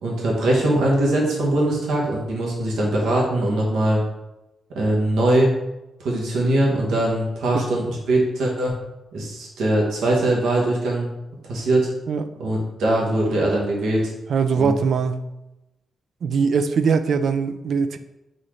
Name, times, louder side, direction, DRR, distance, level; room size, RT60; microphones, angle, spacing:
voice 1, 0.0-4.0 4.8-5.5 6.0-8.7 9.1-11.1 11.4-11.9 12.4-14.1 14.5-14.7, right 1 dB, 90° right, -3 dB, 1.1 m, -21 dB
voice 2, 14.3-15.3 16.2-18.0, right 5 dB, 70° right, 10 dB, 0.3 m, -21 dB
4.0 x 3.7 x 3.1 m, 0.96 s
cardioid pair, 75°, 0 cm